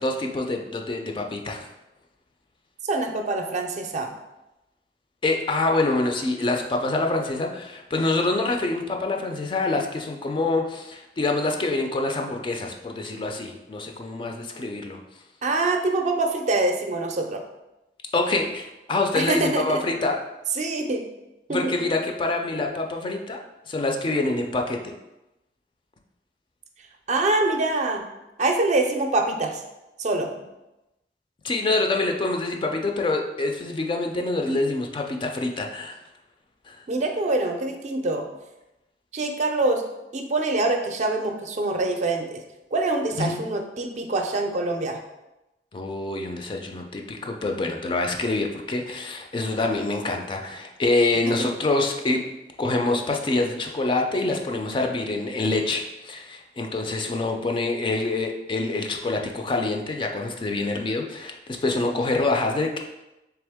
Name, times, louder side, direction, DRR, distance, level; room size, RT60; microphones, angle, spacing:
voice 1, 0.0-1.7 5.2-15.0 18.1-20.2 21.5-23.4 23.7-24.9 31.4-36.0 36.7-36.8 43.2-43.4 45.7-52.2 52.6-62.8, left 2 dB, 30° left, 3 dB, 0.4 m, -26 dB
voice 2, 2.8-4.1 15.4-17.4 19.1-19.8 20.5-21.0 21.5-21.8 27.1-28.0 28.4-29.6 30.0-30.5 36.9-38.3 39.1-39.8 40.1-42.4 42.7-45.0 51.3-51.4, right 2 dB, 40° right, 4 dB, 0.4 m, -25 dB
3.5 x 3.3 x 3.5 m, 0.96 s
head